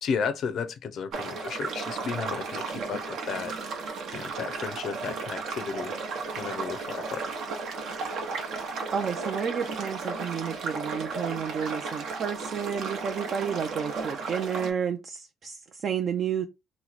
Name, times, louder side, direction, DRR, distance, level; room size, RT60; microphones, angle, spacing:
voice 1, 0.0-3.5 4.1-5.9 6.4-7.2 7.6-7.7, left 6 dB, 65° left, 0.4 m, -33 dB
sound 1, 1.1-14.7, right 4 dB, 70° right, 0.8 m, -34 dB
voice 2, 8.9-16.5, right 7 dB, 55° right, 0.4 m, -31 dB
2.9 x 2.1 x 3.8 m
cardioid pair, 95°, 0 cm